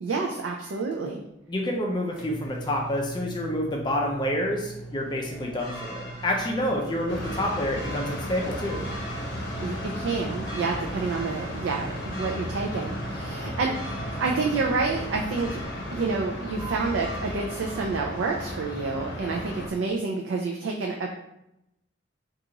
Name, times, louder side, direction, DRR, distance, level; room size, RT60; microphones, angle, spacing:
voice 1, 0.0-1.2 9.6-15.6 15.9-21.1, right 4 dB, 80° right, 1 dB, 0.4 m, -29 dB
Microwave oven, 0.6-15.7, right 3 dB, 5° right, 0.7 m, -41 dB
voice 2, 1.5-8.9, left 1 dB, 25° left, 0 dB, 0.4 m, -28 dB
sound 1, 5.3-17.9, equal, 30° right, 1.2 m, -42 dB
sound 2, 7.1-19.7, left 1 dB, 65° left, 0.7 m, -35 dB
2.8 x 2.4 x 3.8 m, 0.85 s
head